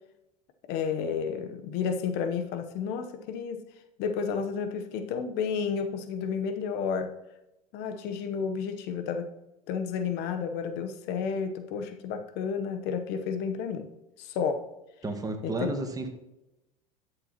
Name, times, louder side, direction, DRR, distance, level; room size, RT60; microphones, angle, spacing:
voice 1, 0.7-3.6 4.0-7.1 7.7-9.3 9.7-13.9 14.2-14.6 15.4-15.7, left 6 dB, 55° left, 8 dB, 0.9 m, -31 dB
voice 2, 15.0-16.1, right 2 dB, 20° right, 6 dB, 1.5 m, -32 dB
12.0 x 6.9 x 3.0 m, 0.91 s
hypercardioid pair, 85°, 20 cm